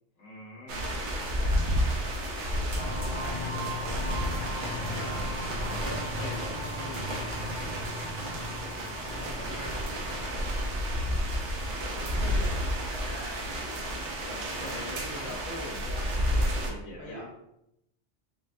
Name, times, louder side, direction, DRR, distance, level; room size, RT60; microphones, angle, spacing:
voice 1, 0.2-0.9 4.9-7.9 14.2-17.3, left 1 dB, 75° left, -3 dB, 1.0 m, -42 dB
sound 1, 0.7-16.7, equal, 80° right, 0.9 m, -31 dB
voice 2, 0.8-1.8 2.6-5.1 9.0-10.5 12.1-12.5 12.9-13.4 16.9-17.3, left 1 dB, 5° left, -7 dB, 0.9 m, -44 dB
sound 2, 2.7-13.2, left 1 dB, 40° left, 1.3 m, -39 dB
4.0 x 2.1 x 2.5 m, 0.81 s
omnidirectional pair, 1.2 m